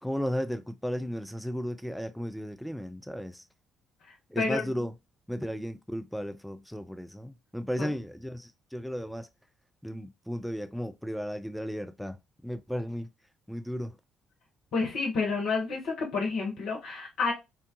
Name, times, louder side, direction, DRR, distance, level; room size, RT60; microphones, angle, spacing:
voice 1, 0.0-3.4 4.3-4.9 5.3-9.3 9.8-13.1 13.5-14.0, equal, ahead, 0.3 m, -35 dB
voice 2, 14.7-17.3, left 4 dB, 60° left, 0.7 m, -29 dB
2.7 x 2.2 x 2.6 m
figure-of-eight pair, 45°, 0 cm